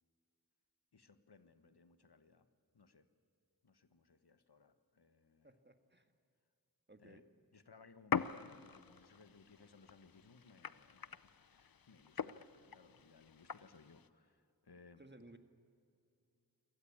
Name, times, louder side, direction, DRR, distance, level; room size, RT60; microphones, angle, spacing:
voice 1, 0.9-2.5 2.7-3.1 3.6-5.6 7.0-7.2 7.5-15.0, left 4 dB, 80° left, 11 dB, 1.2 m, -63 dB
voice 2, 5.4-6.1 6.9-7.2 15.0-15.4, right 1 dB, 25° right, 7 dB, 1.9 m, -59 dB
sound 1, 8.1-14.1, left 7 dB, 65° left, 0.7 m, -44 dB
27.0 x 17.5 x 8.6 m, 2.5 s
wide cardioid pair, 45°, 39 cm